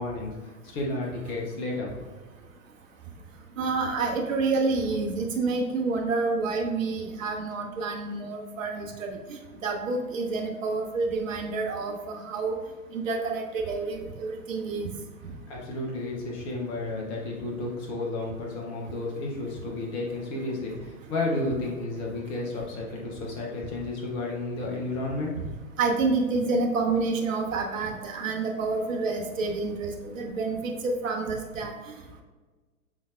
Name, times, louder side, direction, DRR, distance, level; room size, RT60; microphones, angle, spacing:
voice 1, 0.0-1.9 15.5-25.3, left 2 dB, 10° left, -2 dB, 0.4 m, -32 dB
voice 2, 3.6-12.6 12.9-14.9 25.8-31.7, right 3 dB, 60° right, 2 dB, 1.0 m, -28 dB
6.1 x 3.8 x 2.2 m, 1.3 s
figure-of-eight pair, 115°, 43 cm